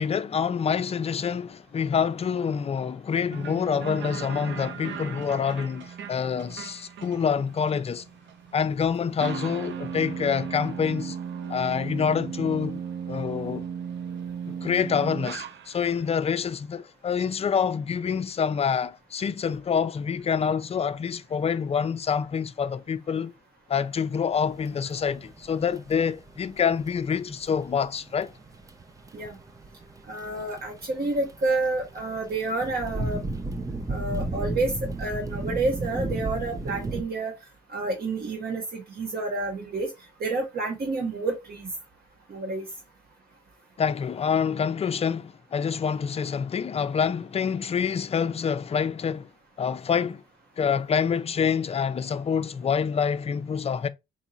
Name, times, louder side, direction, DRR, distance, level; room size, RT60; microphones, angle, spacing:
voice 1, 0.0-8.0 8.5-11.2 11.5-12.8 13.1-13.7 14.5-23.3 23.7-28.3 43.8-49.3 49.6-50.2 50.6-53.9, left 6 dB, 30° left, 0.5 m, -26 dB
sound 1, 3.3-16.1, right 7 dB, 65° right, 0.7 m, -37 dB
sound 2, 24.3-37.0, right 2 dB, 15° right, 0.6 m, -34 dB
voice 2, 30.1-33.2 33.9-34.7 35.0-37.3 37.7-39.9 40.2-41.7 42.3-42.6, right 2 dB, 50° right, 1.2 m, -29 dB
4.5 x 2.7 x 3.0 m
cardioid pair, 90°, 20 cm